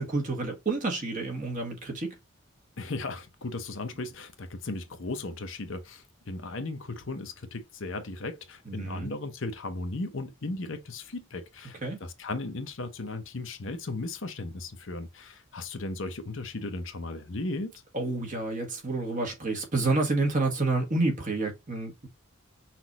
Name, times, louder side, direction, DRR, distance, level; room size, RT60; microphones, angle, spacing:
voice 1, 0.0-2.2 8.7-9.1 11.8-12.0 17.9-22.1, right 2 dB, 35° right, 1.3 m, -29 dB
voice 2, 2.8-17.7, left 2 dB, 60° left, 0.8 m, -36 dB
5.8 x 2.6 x 2.9 m
head